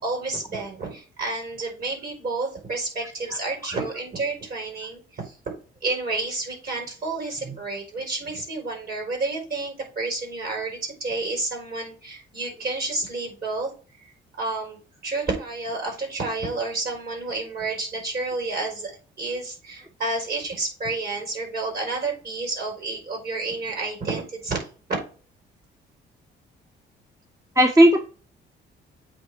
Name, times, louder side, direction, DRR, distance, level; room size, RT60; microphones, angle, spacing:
voice 1, 0.0-5.0 5.8-13.7 14.4-18.9 19.2-24.6, right 3 dB, 50° right, 1 dB, 4.4 m, -30 dB
voice 2, 27.6-28.1, right 1 dB, 15° right, 4 dB, 0.9 m, -17 dB
7.9 x 3.4 x 6.1 m, 0.37 s
cardioid pair, 90°, 20 cm